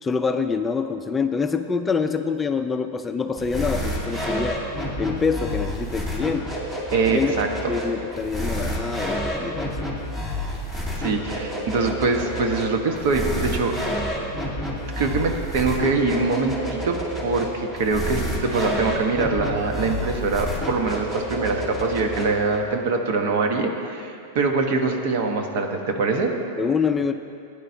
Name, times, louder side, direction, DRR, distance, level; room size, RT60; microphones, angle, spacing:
voice 1, 0.0-4.6 5.0-6.5 7.1-7.3 7.7-9.9 26.6-27.1, left 5 dB, 15° left, 7 dB, 0.4 m, -25 dB
sound 1, 3.4-22.6, equal, 20° right, 2.5 m, -29 dB
voice 2, 6.9-7.7 11.0-13.8 14.3-14.4 14.7-26.3, right 4 dB, 65° right, 4 dB, 1.2 m, -24 dB
16.0 x 10.0 x 2.8 m, 2.5 s
hypercardioid pair, 120°, 0 cm